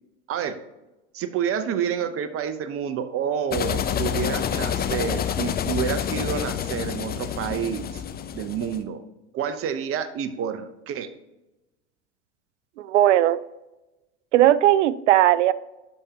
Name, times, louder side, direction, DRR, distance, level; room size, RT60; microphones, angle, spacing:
voice 1, 0.3-0.6 1.1-8.0 8.3-9.0 9.3-11.1, right 8 dB, 40° right, 11 dB, 0.9 m, -29 dB
sound 1, 3.5-8.8, left 9 dB, 25° left, 0.7 m, -28 dB
voice 2, 12.8-13.4 14.3-15.5, right 13 dB, 80° right, 18 dB, 0.5 m, -18 dB
12.0 x 5.2 x 2.9 m, 1.0 s
hypercardioid pair, 85°, 35 cm